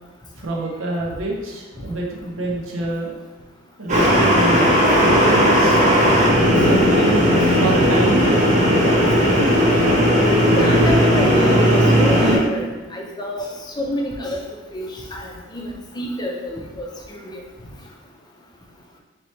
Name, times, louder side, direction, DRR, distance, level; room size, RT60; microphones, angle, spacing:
voice 1, 0.4-3.1 3.8-5.8 6.6-8.4, right 2 dB, 85° right, -2 dB, 0.8 m, -27 dB
sound 1, 3.9-12.4, equal, 35° right, 0.8 m, -16 dB
voice 2, 8.9-9.8 10.5-13.5 13.8-14.4 14.7-17.4, equal, 20° left, -1 dB, 0.6 m, -28 dB
4.3 x 3.0 x 3.1 m, 1.2 s
head